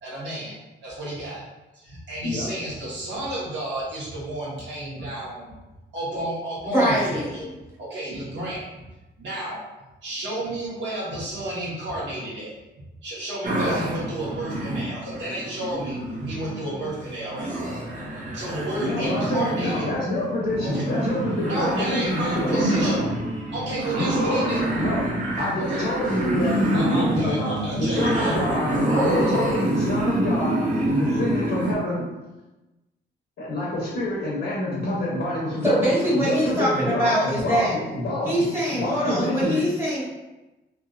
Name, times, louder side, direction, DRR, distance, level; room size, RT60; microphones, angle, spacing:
voice 1, 0.0-1.4 1.7-5.5 5.9-7.4 7.8-8.6 9.2-9.6 10.0-12.5 13.0-17.7 18.2-19.9 20.6-20.8 21.4-23.0 23.5-24.6 25.6-25.8 26.7-28.6, right 1 dB, 70° right, -8 dB, 1.5 m, -31 dB
voice 2, 6.7-7.5 35.6-37.7 38.2-40.0, equal, 10° right, -8 dB, 1.2 m, -23 dB
sound 1, 13.4-31.7, right 1 dB, 45° right, 0.7 m, -26 dB
voice 3, 18.8-23.1 24.0-25.1 25.4-30.6 30.9-32.1 33.4-38.4 38.7-39.6, left 1 dB, 65° left, -6 dB, 0.9 m, -27 dB
3.4 x 2.7 x 2.5 m, 1.0 s
cardioid pair, 155°, 19 cm